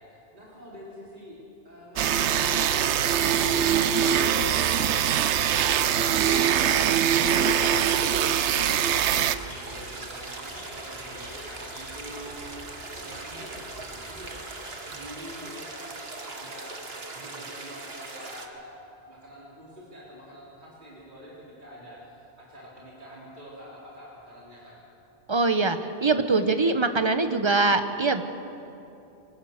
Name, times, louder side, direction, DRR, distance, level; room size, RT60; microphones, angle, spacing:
voice 1, 0.0-1.4 1.6-12.5 12.9-18.7 19.1-24.8, equal, 45° right, -6 dB, 4.1 m, -45 dB
sound 1, 2.0-9.4, right 9 dB, 90° right, 1.0 m, -23 dB
sound 2, 2.8-15.3, equal, 60° left, 4.0 m, -48 dB
sound 3, 4.7-18.5, right 3 dB, 65° right, 1.8 m, -40 dB
voice 2, 25.3-28.2, right 3 dB, 25° right, 8 dB, 1.0 m, -23 dB
23.5 x 19.5 x 6.6 m, 2.8 s
omnidirectional pair, 1.1 m